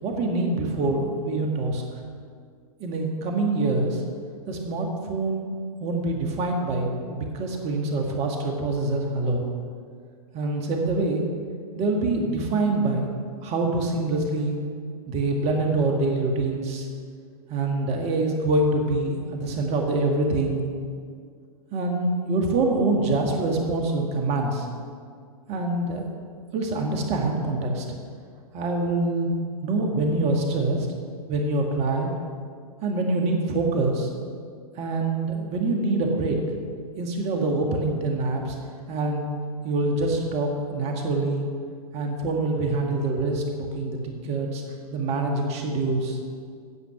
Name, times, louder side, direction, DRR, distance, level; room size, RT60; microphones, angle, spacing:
voice 1, 0.0-1.8 2.8-4.0 4.5-5.5 5.8-9.4 10.3-11.2 11.8-13.1 13.4-14.6 15.1-16.9 17.5-20.6 21.7-24.7 25.5-26.1 26.5-27.9 28.5-29.3 29.6-30.9 31.3-32.1 32.8-34.1 34.8-36.4 37.0-38.6 38.9-39.3 39.6-41.5 41.9-44.6 44.9-46.2, right 2 dB, 35° right, 2 dB, 1.7 m, -25 dB
9.7 x 7.3 x 6.0 m, 2.1 s
hypercardioid pair, 110°, 19 cm